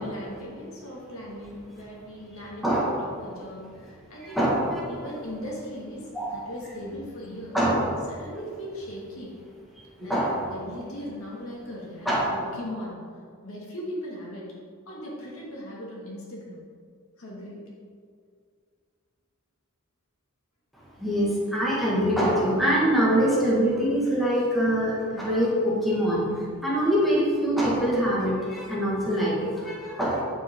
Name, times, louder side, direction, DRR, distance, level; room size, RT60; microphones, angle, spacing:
voice 1, 0.0-4.5 4.9-7.6 8.1-9.4 10.0-13.0 13.4-14.5 14.9-16.6 17.2-17.7, equal, 65° left, -4 dB, 2.1 m, -38 dB
voice 2, 2.6-3.0 4.3-5.0 6.1-6.3 7.5-7.9 10.0-10.5 12.1-12.3 21.0-26.2 26.6-30.2, equal, ahead, -7 dB, 1.9 m, -24 dB
9.0 x 7.3 x 3.8 m, 2.1 s
head